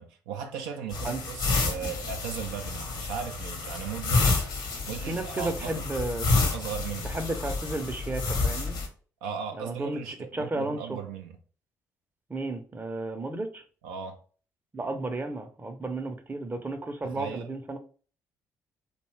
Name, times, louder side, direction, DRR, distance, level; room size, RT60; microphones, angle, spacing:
voice 1, 0.0-4.4 4.8-5.9 6.5-7.2 9.2-11.4 13.8-14.2 17.0-17.6, right 7 dB, 75° right, 0.4 m, -37 dB
sound 1, 0.9-8.9, left 3 dB, 60° left, 0.8 m, -29 dB
voice 2, 5.1-6.3 7.0-8.8 9.6-11.0 12.3-13.6 14.7-17.8, right 2 dB, 20° right, 0.6 m, -33 dB
2.6 x 2.2 x 3.1 m
hypercardioid pair, 45°, 9 cm